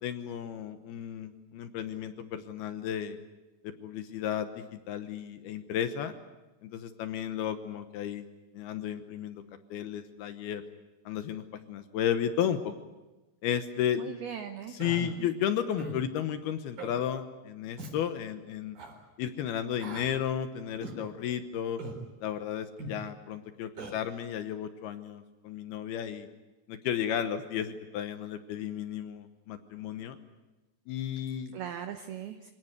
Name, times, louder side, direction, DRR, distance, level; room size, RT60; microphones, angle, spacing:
voice 1, 0.0-3.2 3.6-6.1 6.6-8.3 8.5-9.4 9.7-10.6 11.1-12.7 13.4-14.1 14.7-18.8 19.2-21.8 22.2-26.3 26.7-30.2 30.9-31.5, left 9 dB, 75° left, 9 dB, 2.3 m, -33 dB
voice 2, 14.0-14.8 15.2-15.3 31.5-32.5, right 9 dB, 75° right, 7 dB, 2.3 m, -39 dB
Human voice, 14.8-15.0 15.8-16.0 16.8-17.0 17.8-17.9 18.7-18.9 19.8-20.1 20.8-21.0 21.8-22.0 22.8-23.0 23.8-23.9, right 2 dB, 50° right, 5.9 m, -40 dB
26.0 x 18.0 x 9.6 m, 1.1 s
omnidirectional pair, 5.8 m